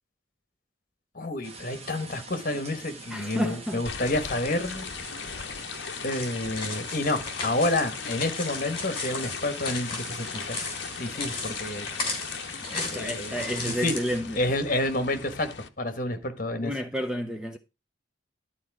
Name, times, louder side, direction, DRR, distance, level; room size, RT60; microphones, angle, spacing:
voice 1, 1.1-4.8 5.3-5.7 6.0-10.6 11.0-11.9 12.9-13.9 14.4-15.5 15.8-16.7, left 1 dB, 45° left, 1.4 m, -29 dB
sound 1, 1.4-14.2, right 3 dB, 30° right, 1.3 m, -44 dB
voice 2, 3.1-3.8 12.7-14.4 16.6-17.6, equal, 5° right, 0.6 m, -31 dB
sound 2, 3.9-15.7, left 6 dB, 60° left, 0.8 m, -38 dB
sound 3, 6.1-14.1, left 4 dB, 25° left, 3.1 m, -36 dB
11.5 x 4.3 x 4.8 m
head